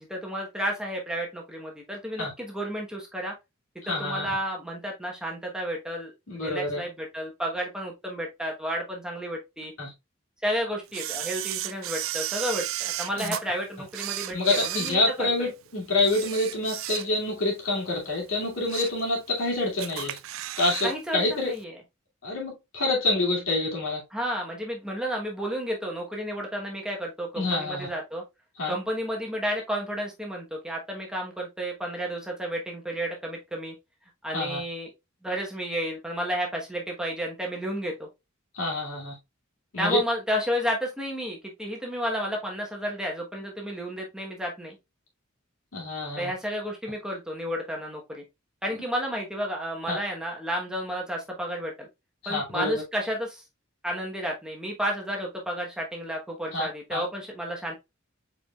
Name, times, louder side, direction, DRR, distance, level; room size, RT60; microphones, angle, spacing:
voice 1, 0.1-3.3 3.9-9.7 10.4-15.0 15.4-15.5 20.8-21.7 24.1-28.2 28.7-33.7 34.2-34.9 35.2-38.1 39.8-44.8 46.2-48.2 48.6-51.9 52.3-53.4 53.8-57.7, equal, 5° right, 1.0 m, -32 dB
voice 2, 3.8-4.3 6.3-6.8 9.8-9.9 13.2-13.3 14.3-20.2 20.6-21.5 22.2-24.0 27.4-27.9 28.6-28.8 34.3-34.6 38.5-39.2 39.7-40.0 45.7-46.3 49.9-50.0 52.2-52.8 56.5-57.0, left 2 dB, 80° left, 2.5 m, -27 dB
Camera, 10.9-13.4 13.9-15.5 16.0-17.4 17.7-17.9 18.4-19.0 19.4-19.5 19.8-20.9 21.2-21.3, right 14 dB, 75° right, 0.4 m, -34 dB
5.1 x 4.5 x 2.3 m
head